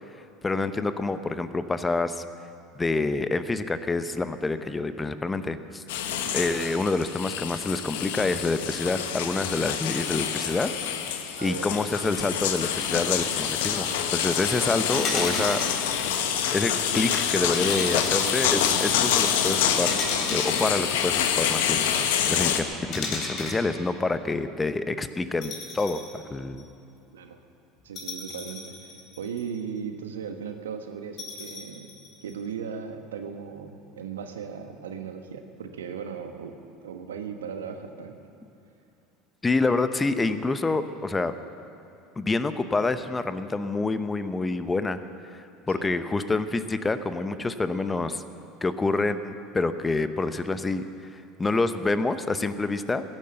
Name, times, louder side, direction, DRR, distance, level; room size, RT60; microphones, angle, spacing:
voice 1, 0.4-2.2 2.7-5.8 6.3-10.7 11.4-15.6 16.5-21.8 22.3-26.7 39.4-41.3 42.2-45.0 45.3-45.4 45.7-48.2 48.6-50.8 51.1-53.0, left 3 dB, 20° left, 11 dB, 0.8 m, -27 dB
sound 1, 5.9-22.6, left 8 dB, 75° left, 1.1 m, -26 dB
voice 2, 11.3-11.8 27.1-27.4 27.8-31.9 32.2-36.5 36.8-38.2 45.8-45.9, right 6 dB, 85° right, 6 dB, 1.2 m, -37 dB
sound 2, 14.9-15.8 17.4-18.4 19.9-21.3 22.9-23.6 25.4-26.2 26.6-26.7 28.0-29.6 31.2-32.3, left 3 dB, 50° left, 3.6 m, -34 dB
16.5 x 11.0 x 7.8 m, 2.7 s
hypercardioid pair, 80°, 0 cm